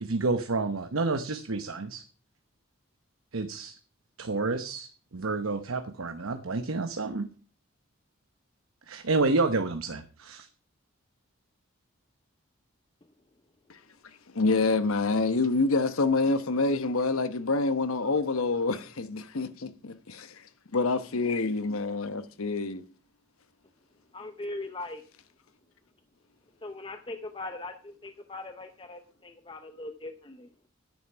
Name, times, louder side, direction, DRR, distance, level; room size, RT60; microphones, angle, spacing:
voice 1, 0.0-2.0 3.3-3.8 4.2-7.3 8.9-10.5, right 3 dB, 80° right, 0.9 m, -29 dB
voice 2, 14.3-20.4 20.7-22.8, left 3 dB, 85° left, 1.0 m, -27 dB
voice 3, 24.1-25.0 26.6-30.5, left 2 dB, 25° left, 0.6 m, -40 dB
9.6 x 9.3 x 5.6 m
head